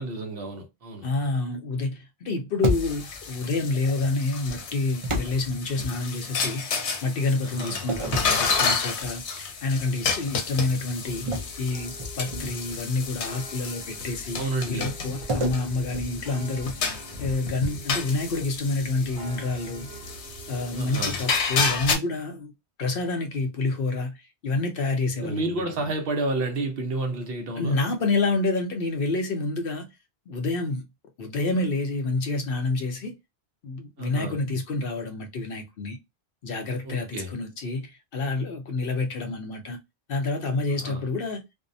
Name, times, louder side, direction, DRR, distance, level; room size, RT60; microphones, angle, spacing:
voice 1, 0.0-1.1 7.4-7.8 14.3-14.9 20.7-21.2 25.2-27.8 34.0-34.4 36.8-37.3 40.7-41.0, right 2 dB, 60° right, 0.9 m, -30 dB
voice 2, 1.0-11.3 11.6-16.8 17.2-19.9 20.5-22.5 22.8-25.4 27.6-29.9 30.3-30.8 31.2-33.1 33.6-36.0 36.4-39.8 40.1-41.4, left 3 dB, 60° left, 0.7 m, -28 dB
sound 1, 2.6-3.3 5.0-6.4 7.9-9.2 9.7-9.9 11.3-12.8 15.3-16.9, equal, 35° right, 0.6 m, -31 dB
sound 2, 2.7-22.0, left 5 dB, 90° left, 1.0 m, -31 dB
sound 3, 11.0-21.8, right 1 dB, 85° right, 1.1 m, -46 dB
2.6 x 2.1 x 2.5 m
omnidirectional pair, 1.1 m